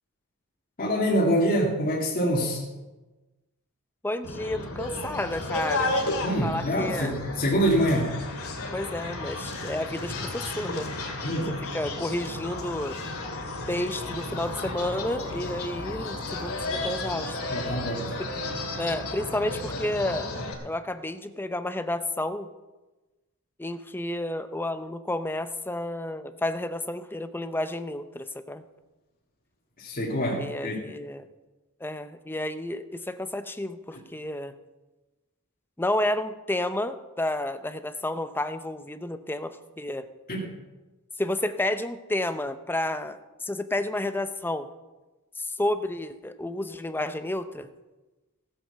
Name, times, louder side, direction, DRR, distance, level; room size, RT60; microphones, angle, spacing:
voice 1, 0.8-2.6 6.2-8.2 11.2-11.6 17.5-18.1 29.8-30.8 40.3-40.4, equal, 40° left, -3 dB, 2.2 m, -25 dB
voice 2, 4.0-6.0 6.4-7.1 8.7-11.0 11.7-13.0 13.7-17.4 18.2-18.3 18.8-20.3 20.6-22.5 23.6-28.6 30.4-31.3 31.8-34.5 35.8-40.1 41.2-44.7 45.4-47.7, left 1 dB, 10° left, 10 dB, 0.6 m, -31 dB
sound 1, 4.2-20.5, left 2 dB, 70° left, 2.4 m, -33 dB
15.0 x 8.3 x 6.7 m, 1.1 s
head